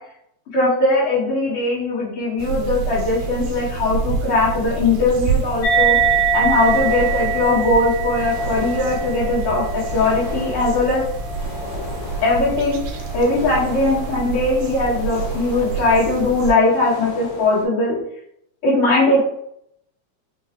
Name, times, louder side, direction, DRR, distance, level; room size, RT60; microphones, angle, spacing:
voice 1, 0.5-6.0 6.3-11.0 12.2-12.8 13.1-18.0 18.6-19.3, left 2 dB, 55° left, -9 dB, 1.8 m, -19 dB
sound 1, 2.4-16.5, right 5 dB, 85° right, 1.9 m, -28 dB
sound 2, 5.6-12.5, right 5 dB, 90° left, 2.1 m, -23 dB
sound 3, 6.4-17.7, left 3 dB, 75° left, 2.3 m, -37 dB
4.9 x 2.1 x 2.8 m, 0.72 s
omnidirectional pair, 3.3 m